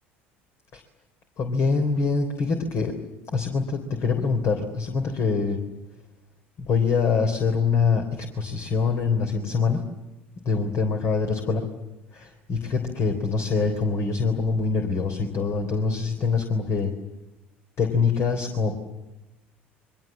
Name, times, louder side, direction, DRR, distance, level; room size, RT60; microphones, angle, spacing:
voice 1, 1.4-2.9 3.3-5.6 6.6-9.8 10.4-11.6 12.1-16.9 17.8-18.7, left 4 dB, 50° left, 5 dB, 3.6 m, -24 dB
29.5 x 24.0 x 7.5 m, 1.0 s
figure-of-eight pair, 65°, 6 cm